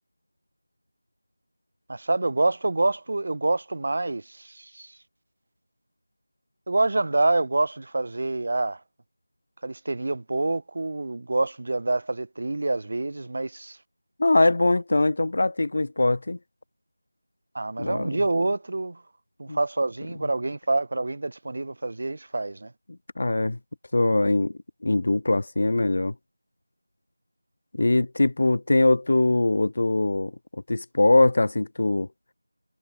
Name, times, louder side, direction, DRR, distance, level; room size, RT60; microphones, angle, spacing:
voice 1, 1.9-4.9 6.7-8.8 9.6-13.8 17.5-19.0 19.4-22.7, right 2 dB, 45° right, 5.8 m, -27 dB
voice 2, 14.2-16.4 17.8-18.2 19.5-19.6 23.2-23.6 23.9-24.5 24.8-26.1 27.7-30.3 30.7-32.1, left 2 dB, 45° left, 4.8 m, -22 dB
figure-of-eight pair, 170°, 0 cm